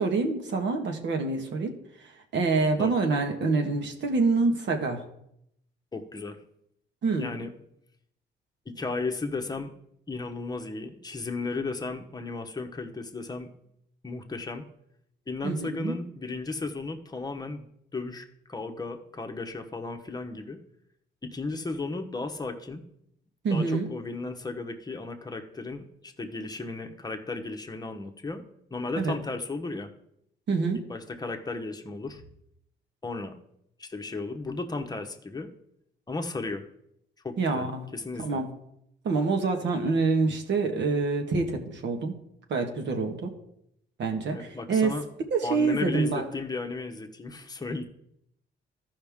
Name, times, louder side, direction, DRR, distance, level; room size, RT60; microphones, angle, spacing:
voice 1, 0.0-1.7 2.3-5.0 7.0-7.3 15.4-16.0 23.4-23.9 29.0-29.1 30.5-30.8 37.4-37.8 38.2-38.5 39.0-42.1 42.5-43.3 44.0-44.9 45.3-46.2, right 4 dB, 65° right, 4 dB, 1.5 m, -26 dB
voice 2, 5.9-6.4 7.2-7.5 8.7-9.7 10.1-13.5 14.0-14.6 15.3-20.6 21.2-22.8 23.5-28.4 28.7-29.9 30.9-32.2 33.0-33.4 33.8-35.5 36.1-36.6 37.2-38.4 44.3-45.0 45.4-47.8, left 3 dB, 20° left, 4 dB, 1.0 m, -35 dB
14.0 x 5.5 x 3.6 m, 0.76 s
cardioid pair, 90°, 20 cm